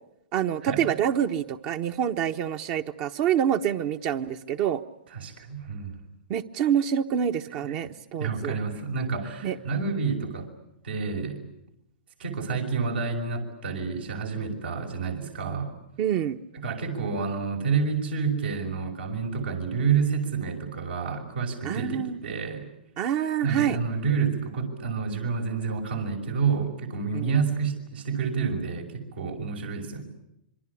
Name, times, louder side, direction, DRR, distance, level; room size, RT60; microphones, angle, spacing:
voice 1, 0.3-4.8 6.3-8.5 9.4-9.6 16.0-16.4 21.6-22.2 23.0-23.8 27.1-27.5, right 9 dB, 40° right, 6 dB, 1.2 m, -26 dB
voice 2, 5.1-6.0 7.6-7.7 8.1-10.5 10.8-11.4 12.2-15.7 16.5-22.7 23.4-30.0, right 5 dB, 80° right, 1 dB, 5.9 m, -29 dB
26.5 x 23.5 x 8.5 m, 0.81 s
hypercardioid pair, 120°, 5 cm